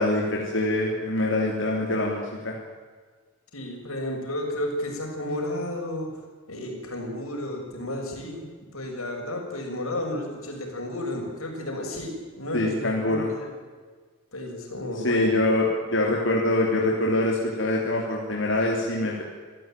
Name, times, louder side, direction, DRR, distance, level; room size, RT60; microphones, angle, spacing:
voice 1, 0.0-2.5 12.5-13.3 15.0-19.2, left 1 dB, 65° left, -1 dB, 3.5 m, -24 dB
voice 2, 3.5-6.2 6.5-8.4 8.7-13.5 14.3-15.4, left 1 dB, 90° left, 2 dB, 6.9 m, -32 dB
27.0 x 15.0 x 9.2 m, 1.5 s
head